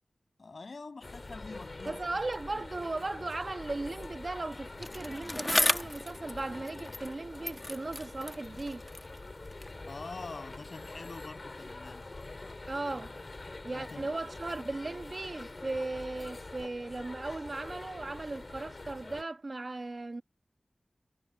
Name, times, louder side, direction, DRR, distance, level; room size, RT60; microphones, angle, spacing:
voice 1, 0.4-2.0 2.5-2.6 9.9-12.1 13.7-14.1, left 3 dB, 75° left, 6.4 m, -45 dB
sound 1, 1.0-19.2, left 2 dB, 50° left, 3.4 m, -45 dB
voice 2, 1.9-8.8 12.7-13.1 13.6-20.2, right 2 dB, 55° right, 1.4 m, -37 dB
Bicycle, 4.8-7.2 7.4-9.8 10.6-10.7, left 1 dB, 30° left, 1.2 m, -34 dB
wide cardioid pair, 60°, 0 cm